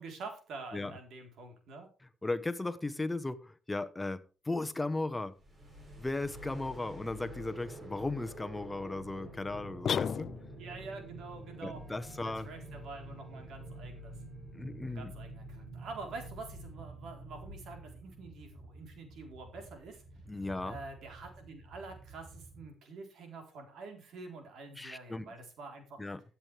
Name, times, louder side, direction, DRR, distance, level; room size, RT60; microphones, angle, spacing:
voice 1, 0.0-1.9 10.6-11.8 12.2-14.1 14.6-20.0 20.6-26.0, right 3 dB, 75° right, 4 dB, 4.1 m, -47 dB
voice 2, 2.2-5.3 6.0-10.3 11.6-12.5 14.5-15.1 20.3-20.8 24.8-25.3 26.0-26.2, left 2 dB, 15° left, 12 dB, 1.2 m, -36 dB
sound 1, 5.4-22.7, right 1 dB, 35° right, 5.9 m, -48 dB
sound 2, 9.9-10.8, left 8 dB, 55° left, 0.5 m, -33 dB
sound 3, 10.1-16.9, left 3 dB, 10° right, 7.8 m, -64 dB
15.5 x 8.4 x 3.5 m, 0.35 s
cardioid pair, 90°, 0 cm